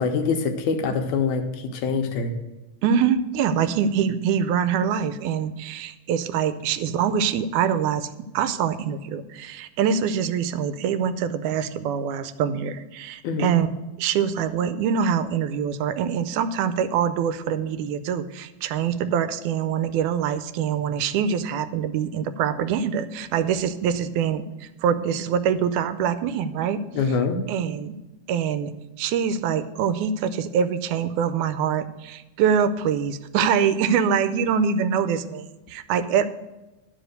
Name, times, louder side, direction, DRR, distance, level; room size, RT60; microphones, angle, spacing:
voice 1, 0.0-2.3 13.2-13.6 26.9-27.4, left 5 dB, 85° left, 5 dB, 2.3 m, -24 dB
voice 2, 2.8-8.1 8.3-13.7 14.0-26.8 27.5-28.0 28.3-36.3, right 7 dB, 85° right, 12 dB, 2.0 m, -24 dB
11.0 x 5.1 x 6.5 m, 1.1 s
omnidirectional pair, 3.4 m